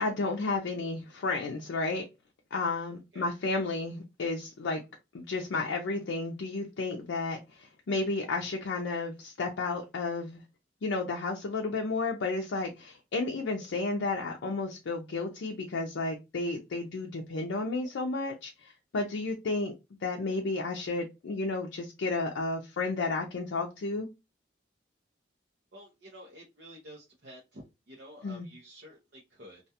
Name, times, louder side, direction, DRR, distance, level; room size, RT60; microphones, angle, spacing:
voice 1, 0.0-2.0 2.5-4.8 5.1-10.4 10.8-19.7 20.0-24.1 28.2-28.5, left 3 dB, 75° left, 0.4 m, -32 dB
voice 2, 25.7-29.6, equal, 60° right, 0.6 m, -50 dB
2.3 x 2.2 x 2.7 m
head